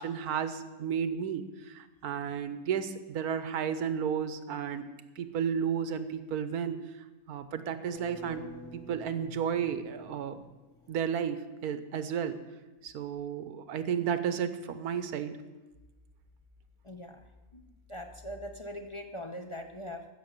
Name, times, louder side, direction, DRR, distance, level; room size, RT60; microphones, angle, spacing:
voice 1, 0.0-4.9 5.2-6.8 7.3-8.4 8.7-10.4 10.9-12.4 12.8-15.3, right 8 dB, 85° right, 11 dB, 1.4 m, -33 dB
sound 1, 7.8-10.9, left 3 dB, 70° left, 3.3 m, -48 dB
voice 2, 16.8-17.2 17.5-17.6 17.9-20.1, equal, 30° left, 5 dB, 0.6 m, -41 dB
15.0 x 6.7 x 6.6 m, 1.1 s
omnidirectional pair, 1.6 m